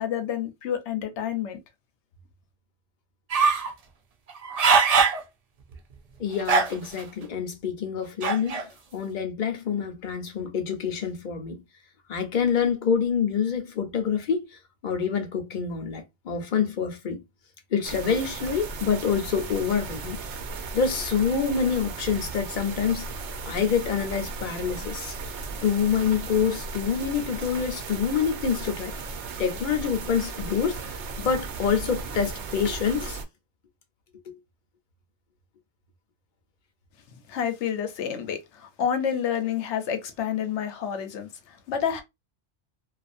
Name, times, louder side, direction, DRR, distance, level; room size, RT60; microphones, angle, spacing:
voice 1, 0.0-1.6 37.3-42.0, left 8 dB, 80° left, 0.9 m, -29 dB
sound 1, 3.3-3.7 4.3-5.2 5.7-5.8 6.4-7.0 8.2-8.6, right 5 dB, 55° right, 0.4 m, -21 dB
voice 2, 6.2-11.6 12.1-14.4 14.8-17.2 17.7-20.2 20.7-23.1 23.5-25.2 25.6-28.9 29.4-33.2, left 6 dB, 50° left, 0.7 m, -26 dB
sound 2, 17.8-33.2, right 4 dB, 75° right, 0.8 m, -36 dB
2.4 x 2.4 x 2.5 m
omnidirectional pair, 1.2 m